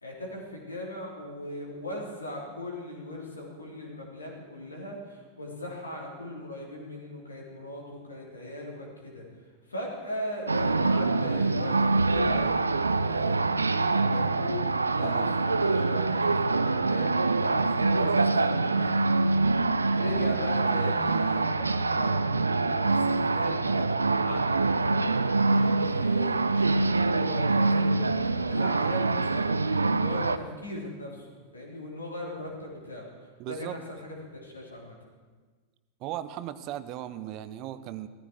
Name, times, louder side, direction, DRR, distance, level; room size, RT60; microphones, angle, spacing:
voice 1, 0.0-9.2 9.7-19.0 20.0-35.0, left 1 dB, 80° left, -2 dB, 3.3 m, -39 dB
sound 1, 10.5-30.4, right 3 dB, 80° right, 0.4 m, -25 dB
voice 2, 15.0-15.4 33.4-33.8 36.0-38.1, right 12 dB, 40° right, 13 dB, 0.7 m, -37 dB
16.0 x 14.0 x 4.6 m, 1.4 s
figure-of-eight pair, 90°, 0 cm